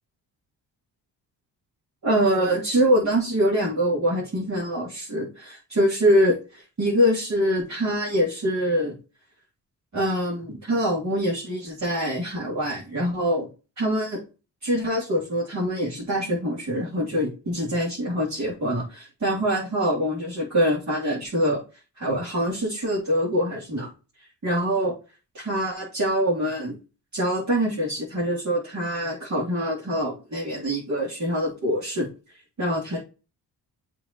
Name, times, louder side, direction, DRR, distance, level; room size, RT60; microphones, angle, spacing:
voice 1, 2.0-8.9 9.9-13.5 13.8-14.2 14.6-21.6 22.0-23.9 24.4-24.9 25.3-26.8 27.1-32.1 32.6-33.0, equal, 40° right, -7 dB, 3.4 m, -24 dB
7.4 x 3.6 x 4.5 m, 0.32 s
cardioid pair, 65°, 41 cm